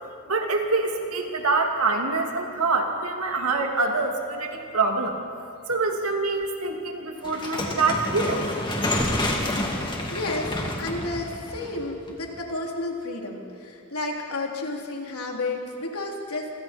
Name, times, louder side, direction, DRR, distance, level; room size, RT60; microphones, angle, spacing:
voice 1, 0.3-5.1 5.7-8.5, right 3 dB, 75° right, 2 dB, 2.8 m, -25 dB
sound 1, 5.7-5.8 6.4-6.5 9.0-10.4 10.8-10.9, equal, ahead, 1.4 m, -37 dB
sound 2, 7.2-12.4, left 1 dB, 20° left, 2.7 m, -29 dB
voice 2, 10.1-16.5, left 2 dB, 80° left, 0 dB, 3.5 m, -31 dB
28.5 x 26.5 x 4.5 m, 2.5 s
head